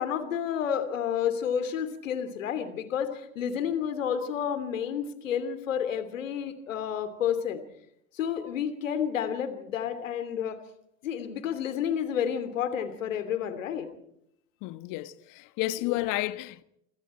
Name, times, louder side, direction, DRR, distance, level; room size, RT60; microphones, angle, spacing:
voice 1, 0.0-7.6 8.1-10.6 11.0-13.9 15.8-16.0, left 8 dB, 75° left, 3.0 m, -30 dB
voice 2, 14.6-16.6, left 17 dB, 50° left, 1.4 m, -31 dB
28.0 x 26.0 x 4.5 m
figure-of-eight pair, 70°, 39 cm